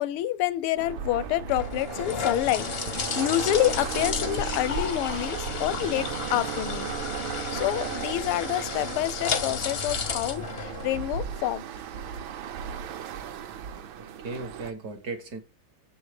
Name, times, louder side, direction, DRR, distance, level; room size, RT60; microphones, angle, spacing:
voice 1, 0.0-6.9 7.5-11.6, left 13 dB, 85° left, 1.5 m, -28 dB
sound 1, 0.8-14.7, right 8 dB, 75° right, 1.6 m, -36 dB
sound 2, 1.0-11.4, left 6 dB, 65° left, 0.6 m, -33 dB
voice 2, 14.0-15.4, right 3 dB, 55° right, 1.3 m, -37 dB
6.8 x 5.6 x 4.9 m
omnidirectional pair, 2.3 m